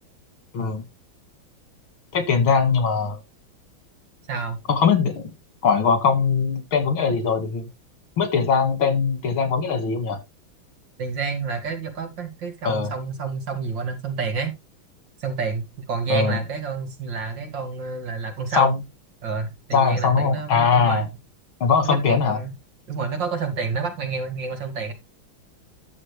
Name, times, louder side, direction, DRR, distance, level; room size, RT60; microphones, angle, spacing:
voice 1, 2.1-3.2 4.7-5.2 5.6-7.7 8.2-10.2 12.6-12.9 16.1-16.4 18.6-18.8 19.7-21.1 21.6-22.4, left 5 dB, 85° left, 2.9 m, -21 dB
voice 2, 4.3-4.6 11.0-14.5 15.2-18.8 19.2-21.1 21.8-22.5 22.9-24.9, right 5 dB, 65° right, 2.7 m, -29 dB
11.0 x 6.9 x 3.3 m
omnidirectional pair, 2.2 m